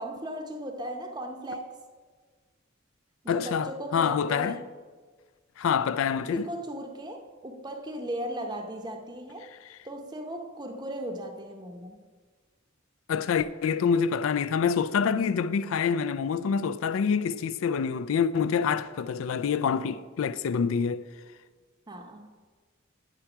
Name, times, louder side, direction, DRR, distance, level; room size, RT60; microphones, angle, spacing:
voice 1, 0.0-1.7 3.2-4.7 6.3-9.5 9.8-12.0 21.9-22.4, right 1 dB, 20° right, 0.6 m, -37 dB
voice 2, 3.3-4.6 5.6-6.5 13.1-21.0, left 6 dB, 80° left, 0.4 m, -26 dB
9.9 x 4.5 x 5.9 m
head